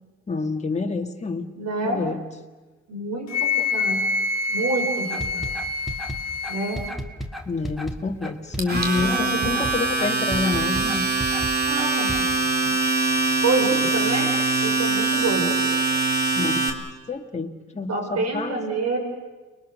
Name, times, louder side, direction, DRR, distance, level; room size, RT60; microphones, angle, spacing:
voice 1, 0.3-1.5 1.8-2.2 7.5-11.1 16.4-16.7 17.1-18.6, left 4 dB, 20° left, 3 dB, 2.1 m, -28 dB
voice 2, 1.6-2.0 2.9-4.1 4.5-5.5 6.5-6.9 9.0-9.6 11.7-12.1 12.6-12.7 13.4-14.3 14.6-15.8 17.9-19.0, right 3 dB, 60° right, 3 dB, 5.5 m, -27 dB
Wind instrument woodwind instrument, 3.3-7.0, left 3 dB, 60° left, 1.7 m, -26 dB
sound 1, 5.1-12.2, equal, ahead, 2.3 m, -33 dB
Domestic sounds home sounds, 8.6-16.7, right 3 dB, 30° right, 3.5 m, -23 dB
30.0 x 22.0 x 6.6 m, 1.3 s
cardioid pair, 90°, 30 cm